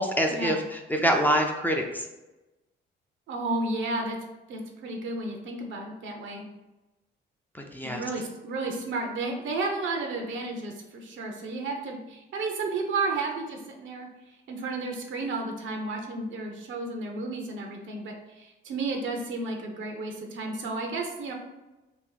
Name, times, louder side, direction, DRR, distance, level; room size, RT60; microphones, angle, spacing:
voice 1, 0.0-2.0 7.5-8.0, equal, 10° left, 2 dB, 0.5 m, -26 dB
voice 2, 3.3-4.2 4.5-6.5 7.8-14.1 14.5-21.3, right 3 dB, 75° right, 2 dB, 0.8 m, -32 dB
2.9 x 2.6 x 3.9 m, 1.0 s
cardioid pair, 90°, 20 cm